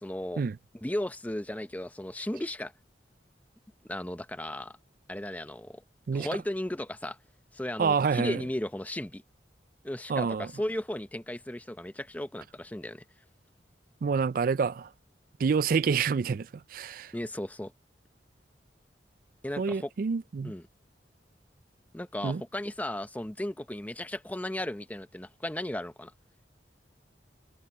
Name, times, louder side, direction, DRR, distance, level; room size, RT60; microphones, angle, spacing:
voice 1, 0.0-0.4 0.7-2.7 3.9-4.8 5.1-5.8 6.1-7.2 7.5-9.2 9.8-13.0 17.1-17.7 19.4-19.9 20.4-20.6 21.9-26.1, left 1 dB, 10° left, 0.7 m, -35 dB
voice 2, 7.8-8.4 10.1-10.5 14.0-14.9 15.4-17.1 19.6-20.5 22.2-22.4, right 5 dB, 50° right, 0.4 m, -27 dB
head